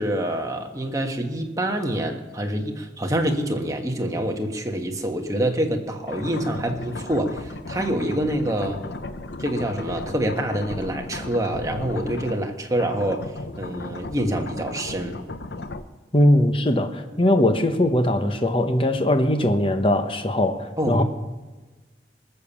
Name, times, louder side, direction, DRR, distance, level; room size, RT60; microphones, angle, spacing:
voice 1, 0.0-8.8 9.4-15.2 20.8-21.0, right 1 dB, 20° right, 3 dB, 1.3 m, -26 dB
sound 1, 6.0-12.4 12.7-15.8, left 2 dB, 75° left, 0.8 m, -35 dB
voice 2, 16.1-21.0, left 1 dB, 30° left, 7 dB, 1.1 m, -20 dB
20.0 x 6.9 x 7.2 m, 1.3 s
head